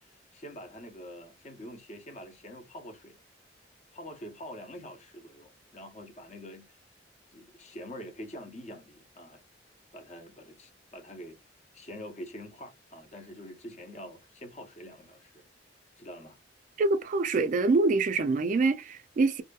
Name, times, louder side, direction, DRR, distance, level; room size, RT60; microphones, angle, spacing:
voice 1, 0.0-3.2 3.9-6.8 7.3-9.4 9.9-11.4 11.7-15.4 16.0-16.4, equal, 40° left, 0.8 m, -45 dB
voice 2, 16.8-19.4, right 3 dB, 45° right, 0.3 m, -25 dB
2.7 x 2.6 x 2.2 m
head